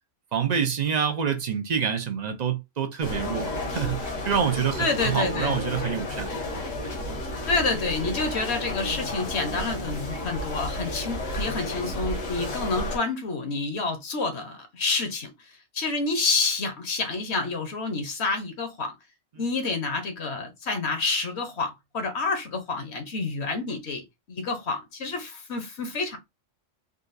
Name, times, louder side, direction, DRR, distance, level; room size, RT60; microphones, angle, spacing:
voice 1, 0.3-6.3, right 7 dB, 55° right, 0.5 m, -27 dB
sound 1, 3.0-13.0, left 1 dB, 80° left, 1.6 m, -32 dB
voice 2, 4.8-5.6 7.5-18.9 19.4-26.2, left 3 dB, 60° left, 1.1 m, -28 dB
3.9 x 2.3 x 2.6 m
omnidirectional pair, 1.3 m